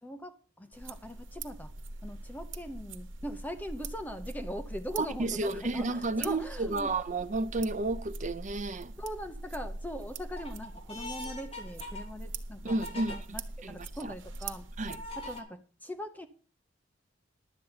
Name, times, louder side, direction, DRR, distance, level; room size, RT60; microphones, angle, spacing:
voice 1, 0.0-1.7 2.0-6.9 9.0-14.7 15.2-16.3, equal, 10° left, 0.8 m, -41 dB
sound 1, 0.7-15.4, right 2 dB, 80° right, 1.2 m, -43 dB
voice 2, 5.0-8.9 12.6-13.2 13.6-13.8 14.0-14.1 14.8-15.0, right 2 dB, 40° right, 0.7 m, -31 dB
sound 2, 7.9-8.3 8.8-9.4 9.9-13.2 13.8-13.9 14.9-15.4, left 1 dB, 30° left, 5.4 m, -43 dB
11.5 x 8.3 x 5.7 m
head